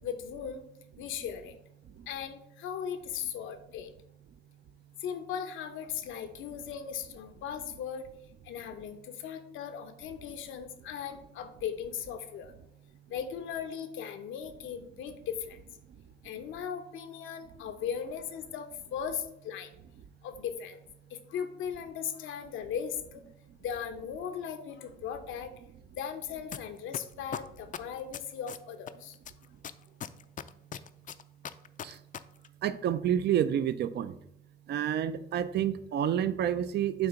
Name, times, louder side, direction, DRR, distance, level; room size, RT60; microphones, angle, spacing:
voice 1, 0.0-0.6 1.0-1.6 2.1-3.9 5.0-8.1 8.4-12.5 13.1-15.6 16.2-19.7 20.2-20.8 21.1-23.2 23.6-25.5 25.9-29.2, left 8 dB, 85° left, 8 dB, 0.8 m, -38 dB
sound 1, 26.5-26.6 26.9-28.9 29.3-32.2 32.4-32.5, left 9 dB, 40° left, 0.4 m, -38 dB
voice 2, 32.6-34.1 34.7-37.1, right 10 dB, 60° right, 13 dB, 0.4 m, -29 dB
7.6 x 2.9 x 5.7 m, 0.76 s
cardioid pair, 90°, 20 cm